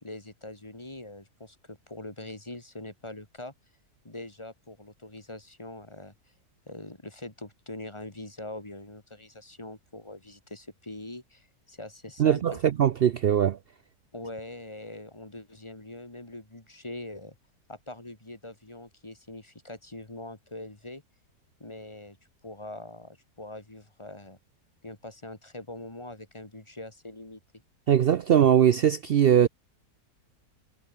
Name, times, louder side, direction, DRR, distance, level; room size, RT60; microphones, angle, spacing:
voice 1, 0.0-3.5 4.0-6.1 6.7-12.6 14.1-17.4 17.7-21.0 21.6-22.2 22.4-24.4 24.8-27.4, left 2 dB, 15° left, 2.9 m, -43 dB
voice 2, 12.2-13.6 27.9-29.5, right 9 dB, 80° right, 0.5 m, -21 dB
omnidirectional pair, 1.7 m